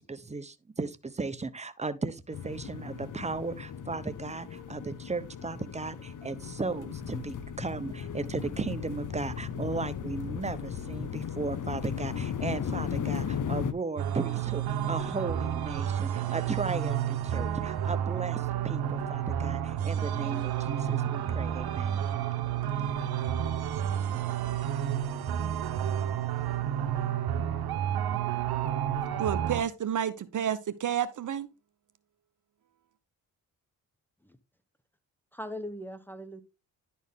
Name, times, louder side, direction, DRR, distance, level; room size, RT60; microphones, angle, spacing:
voice 1, 0.0-22.0, right 3 dB, 20° right, 1.0 m, -36 dB
sound 1, 2.3-13.7, left 7 dB, 55° left, 1.0 m, -36 dB
sound 2, 14.0-29.6, right 10 dB, 75° right, 1.2 m, -30 dB
voice 2, 29.2-31.5, right 9 dB, 55° right, 0.8 m, -30 dB
voice 3, 35.3-36.4, equal, 5° left, 1.1 m, -40 dB
11.0 x 4.4 x 3.6 m
cardioid pair, 65°, 37 cm